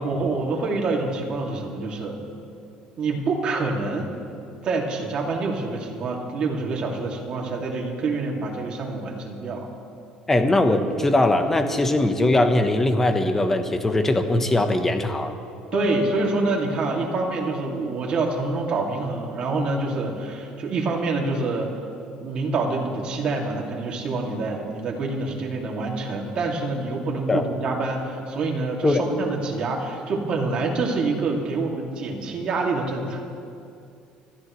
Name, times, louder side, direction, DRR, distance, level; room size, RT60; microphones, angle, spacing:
voice 1, 0.0-2.2 3.0-4.1 4.6-9.7 15.7-21.8 22.2-33.2, right 3 dB, 45° right, -1 dB, 2.5 m, -26 dB
voice 2, 10.3-15.3 27.3-27.5 28.8-29.0, left 2 dB, 15° left, 7 dB, 1.1 m, -20 dB
sound 1, 15.7-18.8, left 6 dB, 60° left, 3.0 m, -35 dB
26.5 x 13.5 x 3.2 m, 2.5 s
cardioid pair, 140°, 2 cm